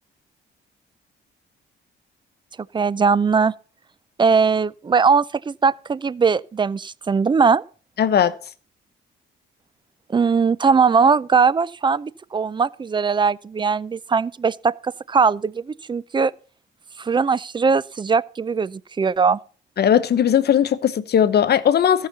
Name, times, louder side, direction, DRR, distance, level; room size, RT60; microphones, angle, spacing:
voice 1, 2.7-3.5 4.2-7.6 10.1-16.3 17.0-19.4, right 5 dB, 25° right, 0.4 m, -20 dB
voice 2, 8.0-8.3 19.8-22.1, left 9 dB, 55° left, 0.9 m, -18 dB
14.0 x 5.7 x 6.9 m
cardioid pair, 90°, 20 cm